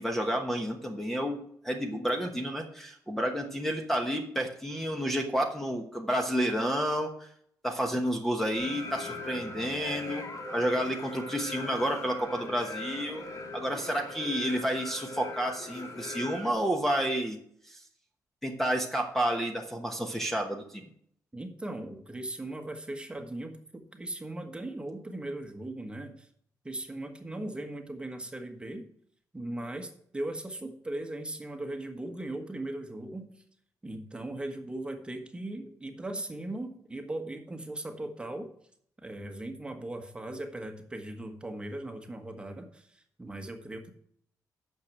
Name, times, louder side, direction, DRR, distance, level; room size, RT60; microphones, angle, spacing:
voice 1, 0.0-7.3 7.6-10.2 10.5-13.2 13.5-17.4 17.6-17.8 18.4-20.8, equal, 5° left, 3 dB, 1.2 m, -30 dB
sound 1, 8.5-16.5, left 2 dB, 55° left, 2.2 m, -40 dB
voice 2, 21.3-26.3 26.6-28.8 29.3-33.3 33.8-38.5 39.0-43.9, right 1 dB, 15° right, 5 dB, 1.4 m, -38 dB
9.4 x 6.7 x 5.9 m, 0.65 s
cardioid pair, 110°, 7 cm